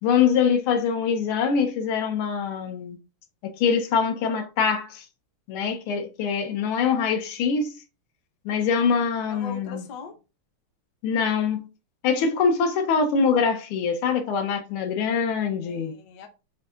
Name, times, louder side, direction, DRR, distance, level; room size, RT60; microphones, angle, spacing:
voice 1, 0.0-3.0 3.4-5.0 5.5-7.8 8.4-9.8 11.0-11.7 12.0-15.9, left 6 dB, 75° left, 1.6 m, -24 dB
voice 2, 9.3-10.2 15.6-16.3, left 4 dB, 60° left, 1.2 m, -40 dB
7.6 x 2.7 x 2.4 m
omnidirectional pair, 2.4 m